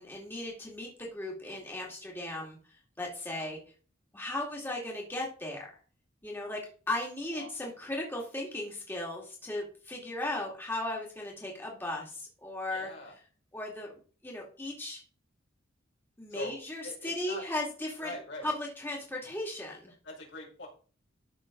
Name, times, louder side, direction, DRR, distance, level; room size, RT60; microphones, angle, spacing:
voice 1, 0.0-2.6 3.0-3.6 4.1-5.7 6.2-6.6 6.9-12.9 13.5-14.0 14.2-15.0 16.2-18.1 18.4-19.9, left 1 dB, 10° left, -2 dB, 2.2 m, -36 dB
voice 2, 12.7-13.1 16.3-16.5 16.8-17.4 18.0-18.5 20.0-20.7, left 2 dB, 60° left, -1 dB, 4.3 m, -42 dB
13.0 x 6.2 x 3.8 m, 0.40 s
head